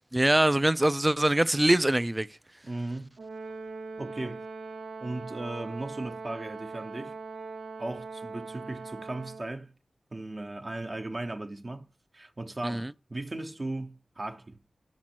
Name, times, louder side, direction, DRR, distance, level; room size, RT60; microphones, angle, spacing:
voice 1, 0.1-2.3 12.6-12.9, right 1 dB, 15° right, 0.4 m, -23 dB
voice 2, 2.6-3.2 4.0-4.5 5.0-7.2 7.8-9.7 10.1-11.9 12.1-14.6, right 2 dB, 40° right, 0.9 m, -37 dB
Brass instrument, 3.2-9.6, right 4 dB, 80° right, 0.5 m, -41 dB
6.0 x 5.2 x 4.4 m
wide cardioid pair, 75°, 0 cm